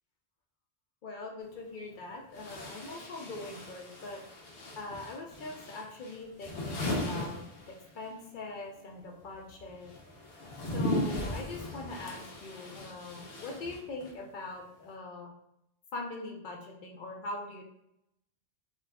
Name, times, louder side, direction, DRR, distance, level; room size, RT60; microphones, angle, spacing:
voice 1, 1.0-4.2 4.8-9.9 10.7-15.3 15.9-17.6, left 2 dB, 55° left, 0 dB, 0.6 m, -42 dB
sound 1, 1.4-1.5 2.3-8.1 8.4-14.2, left 1 dB, 85° left, 1.0 m, -38 dB
3.7 x 2.4 x 2.2 m, 0.79 s
omnidirectional pair, 1.1 m